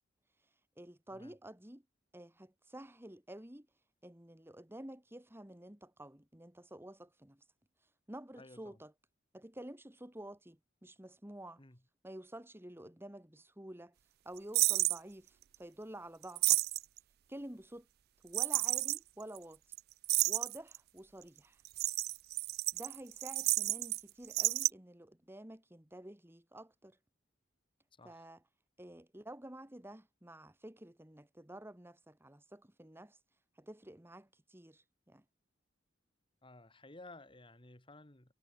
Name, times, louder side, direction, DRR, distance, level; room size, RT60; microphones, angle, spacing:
voice 1, 0.8-1.8 2.1-3.7 4.0-7.4 8.1-8.9 9.3-11.6 12.0-14.0 14.3-16.6 17.3-17.9 18.2-19.6 20.3-21.6 22.7-27.0 28.0-28.4 28.8-33.2 33.6-35.2, right 1 dB, 10° right, 1.8 m, -50 dB
voice 2, 8.4-8.8 11.6-11.8 27.9-28.3 36.4-38.3, left 2 dB, 25° left, 2.3 m, -55 dB
sound 1, 14.5-15.0 16.2-17.0 18.3-19.0 19.4-19.5 19.7-19.8 20.0-20.8 21.6-24.0 24.2-24.7, right 18 dB, 55° right, 0.4 m, -31 dB
head